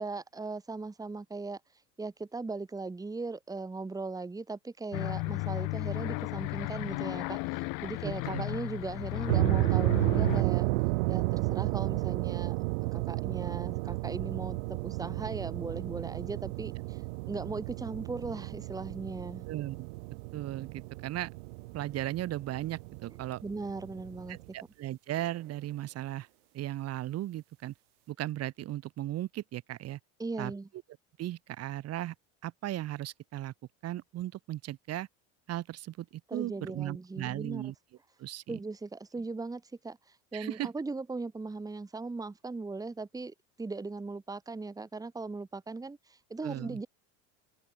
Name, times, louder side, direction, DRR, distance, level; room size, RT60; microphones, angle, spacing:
voice 1, 0.0-1.6 2.0-10.7 11.1-19.4 23.4-24.4 30.2-30.7 36.3-37.7 38.5-46.9, right 3 dB, 10° right, 2.3 m, -38 dB
sound 1, 4.9-10.4, left 28 dB, 65° left, 2.1 m, -34 dB
voice 2, 8.0-8.4 19.5-19.9 20.3-21.3 21.7-23.4 24.3-26.3 26.5-27.7 28.1-30.0 30.4-30.5 31.2-32.1 32.4-33.5 33.8-35.1 35.5-37.7 38.2-38.6 40.3-40.7 46.4-46.8, right 14 dB, 45° right, 2.8 m, -36 dB
sound 2, 9.3-24.5, right 26 dB, 85° right, 0.9 m, -32 dB
cardioid pair, 135°, 35 cm